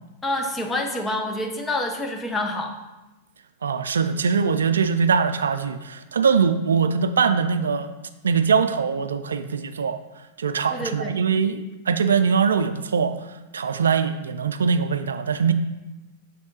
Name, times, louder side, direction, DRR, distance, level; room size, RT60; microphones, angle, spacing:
voice 1, 0.2-2.7 10.7-11.2, left 1 dB, 15° left, 3 dB, 0.8 m, -27 dB
voice 2, 3.6-7.9 8.2-10.0 10.4-13.1 13.5-15.5, right 6 dB, 80° right, 10 dB, 0.3 m, -22 dB
7.1 x 3.5 x 4.0 m, 1.0 s
hypercardioid pair, 100°, 0 cm